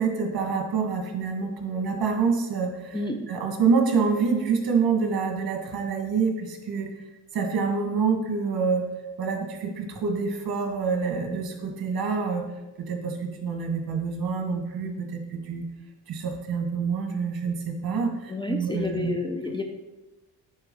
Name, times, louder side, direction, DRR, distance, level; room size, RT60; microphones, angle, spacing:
voice 1, 0.0-3.0 3.3-6.9 7.3-8.8 9.2-12.4 12.8-15.6 16.1-19.1, right 5 dB, 55° right, 2 dB, 1.6 m, -26 dB
voice 2, 2.9-3.3 18.3-19.6, left 2 dB, 10° left, 2 dB, 0.5 m, -30 dB
9.7 x 4.1 x 3.7 m, 1.1 s
cardioid pair, 105°, 43 cm